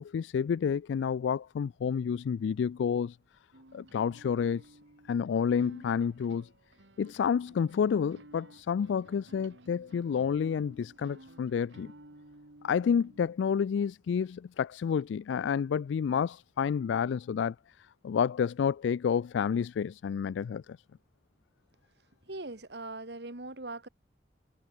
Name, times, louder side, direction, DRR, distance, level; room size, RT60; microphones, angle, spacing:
voice 1, 0.0-3.2 3.7-4.6 5.1-6.5 7.0-11.9 12.6-17.5 18.0-20.8, left 7 dB, 85° left, 0.3 m, -29 dB
sound 1, 3.5-13.3, right 1 dB, 90° right, 2.5 m, -56 dB
voice 2, 22.2-23.9, right 2 dB, 65° right, 2.1 m, -40 dB
head